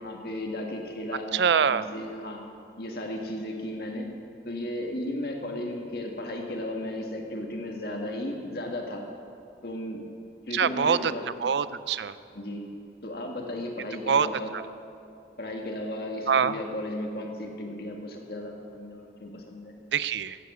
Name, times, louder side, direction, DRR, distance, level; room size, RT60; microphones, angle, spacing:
voice 1, 0.0-2.4 2.8-4.1 4.4-9.0 9.6-10.0 10.5-11.3 12.3-12.7 13.0-14.5 15.4-19.7, left 1 dB, 55° left, 1 dB, 1.8 m, -35 dB
voice 2, 1.3-1.9 10.5-11.1 11.4-12.1 14.1-14.3 16.3-16.5 19.9-20.4, right 6 dB, 70° right, 15 dB, 0.4 m, -24 dB
14.5 x 8.3 x 7.9 m, 2.6 s
head